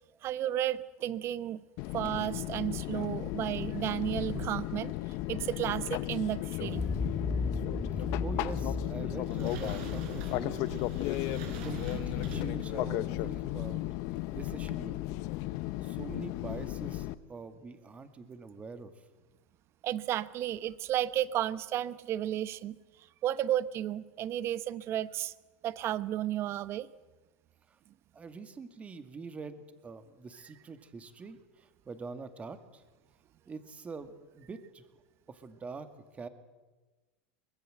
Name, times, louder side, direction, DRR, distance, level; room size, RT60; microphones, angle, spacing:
voice 1, 0.2-1.6 1.9-4.9 5.3-6.8 11.3-11.4 19.8-22.8 23.2-25.3 25.6-26.9, right 12 dB, 40° right, 17 dB, 1.0 m, -33 dB
Fixed-wing aircraft airplane, 1.8-17.1, left 17 dB, 55° left, 0.9 m, -35 dB
sound 1, 6.6-11.4, left 3 dB, 10° left, 1.4 m, -36 dB
voice 2, 8.0-10.9 11.6-13.8 14.3-15.2 15.8-18.9 27.7-27.8 28.1-32.8 33.5-34.9 35.3-35.9 36.1-36.3, right 4 dB, 20° right, 10 dB, 2.1 m, -44 dB
sound 2, 8.7-13.7, right 7 dB, 65° right, 5.9 m, -45 dB
23.5 x 21.0 x 7.8 m, 1.2 s
supercardioid pair, 120°, 6 cm